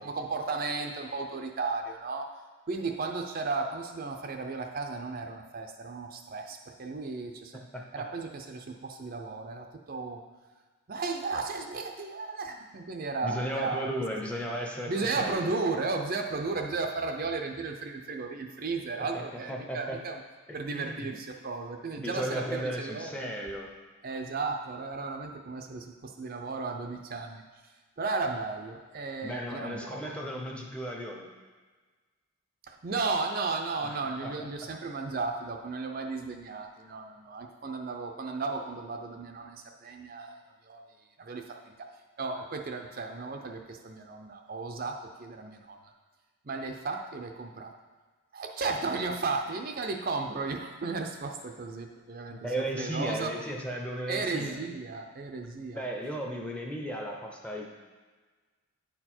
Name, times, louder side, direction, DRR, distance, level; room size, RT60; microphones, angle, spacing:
voice 1, 0.0-2.3 2.7-7.6 7.9-10.2 10.9-13.9 14.9-20.2 20.5-23.2 24.0-27.4 28.0-30.1 32.7-40.8 41.2-41.9 42.2-45.9 46.4-47.7 48.3-53.3 54.1-55.8, right 3 dB, 40° right, 3 dB, 0.5 m, -34 dB
voice 2, 13.2-15.6 18.9-20.0 20.5-21.0 22.0-23.7 29.2-31.3 33.8-34.4 52.3-54.6 55.7-57.7, equal, 5° left, 0 dB, 0.6 m, -35 dB
9.6 x 4.5 x 4.3 m, 1.4 s
head